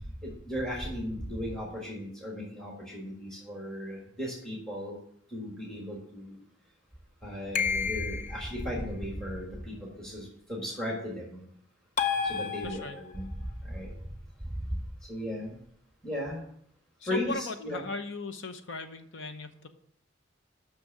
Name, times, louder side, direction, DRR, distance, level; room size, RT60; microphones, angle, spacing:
voice 1, 0.2-5.0 5.3-6.4 7.2-11.5 12.2-13.3 13.6-13.9 14.4-14.6 15.1-15.6 16.0-16.4 17.0-17.8, equal, 5° left, -3 dB, 1.7 m, -36 dB
sound 1, 7.5-8.5 12.0-13.2, left 6 dB, 40° left, 0.7 m, -30 dB
voice 2, 12.6-13.0 17.0-19.7, left 3 dB, 75° left, 8 dB, 0.9 m, -38 dB
6.3 x 6.1 x 7.3 m, 0.68 s
head